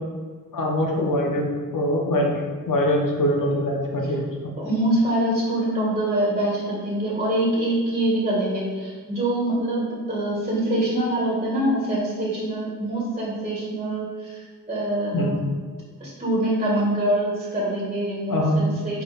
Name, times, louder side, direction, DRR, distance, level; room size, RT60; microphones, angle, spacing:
voice 1, 0.5-2.4 2.7-4.3 15.1-15.4 18.3-18.6, equal, 80° left, 0 dB, 1.2 m, -23 dB
voice 2, 4.6-14.4 14.7-15.4 16.0-19.0, right 1 dB, 20° right, -5 dB, 1.7 m, -24 dB
4.7 x 4.3 x 5.0 m, 1.5 s
wide cardioid pair, 110°, 32 cm